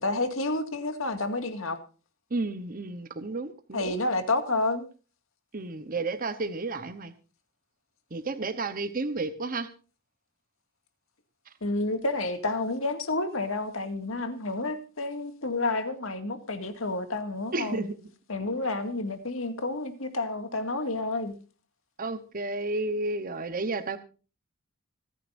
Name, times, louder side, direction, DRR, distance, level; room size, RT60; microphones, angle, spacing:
voice 1, 0.0-1.8 3.7-4.9 11.6-17.9 18.3-21.3, left 2 dB, 65° left, 2.2 m, -30 dB
voice 2, 2.3-4.0 5.5-7.1 8.1-9.7 17.5-17.9 22.0-24.0, right 3 dB, 40° right, 1.0 m, -32 dB
25.5 x 9.7 x 2.6 m
head